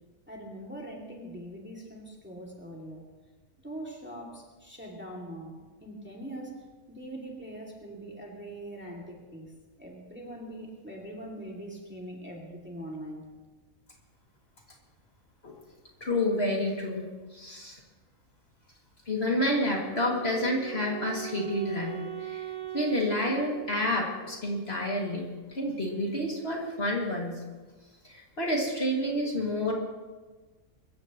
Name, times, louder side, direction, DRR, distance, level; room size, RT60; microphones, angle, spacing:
voice 1, 0.3-3.0 3.6-6.6 6.9-9.5 9.8-13.3, right 1 dB, 5° right, -2 dB, 2.4 m, -42 dB
voice 2, 16.0-17.1 17.3-17.8 19.1-22.5 22.7-27.3 28.0-29.7, left 1 dB, 45° left, -2 dB, 2.6 m, -29 dB
Wind instrument woodwind instrument, 19.6-24.6, right 13 dB, 75° right, 1.6 m, -41 dB
24.5 x 14.5 x 3.0 m, 1.3 s
omnidirectional pair, 1.5 m